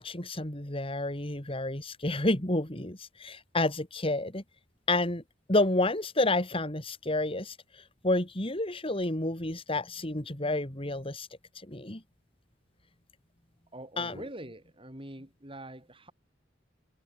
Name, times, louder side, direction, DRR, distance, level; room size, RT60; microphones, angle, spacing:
voice 1, 0.0-4.4 4.9-5.2 5.5-7.6 8.0-11.3 11.7-12.0 14.0-14.2, left 2 dB, 30° left, 3.2 m, -30 dB
voice 2, 13.7-16.1, right 1 dB, 30° right, 6.3 m, -44 dB
head